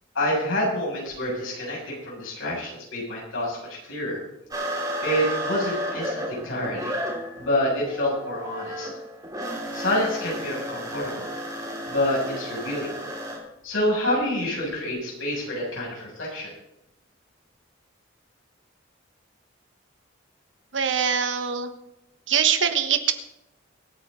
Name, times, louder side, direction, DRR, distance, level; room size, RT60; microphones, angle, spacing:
voice 1, 0.1-4.2 5.0-7.0 7.4-8.9 9.7-11.3 11.9-12.9 13.6-16.5, left 1 dB, 85° left, -4 dB, 6.8 m, -27 dB
sound 1, 4.5-13.4, equal, 20° right, 3.2 m, -32 dB
voice 2, 20.7-21.7 22.3-23.1, right 8 dB, 65° right, 8 dB, 1.3 m, -23 dB
24.0 x 9.0 x 3.9 m, 0.86 s
head